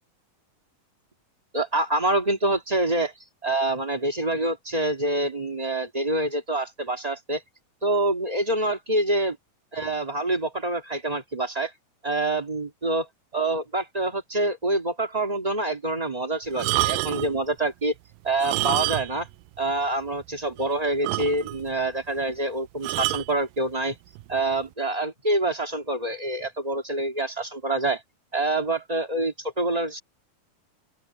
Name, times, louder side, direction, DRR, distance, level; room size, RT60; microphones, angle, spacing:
voice 1, 1.5-3.1 3.4-7.4 7.8-9.3 9.7-11.7 12.0-13.1 13.3-17.9 18.2-19.3 19.6-23.9 24.3-28.0 28.3-30.0, right 2 dB, 30° right, 0.6 m, -26 dB
sound 1, 16.5-17.4 18.3-19.3 19.6-19.7 20.2-20.3 20.6-20.7 21.0-21.7 22.8-23.3 24.2-24.4, right 19 dB, 80° right, 2.0 m, -27 dB
open air
omnidirectional pair, 4.2 m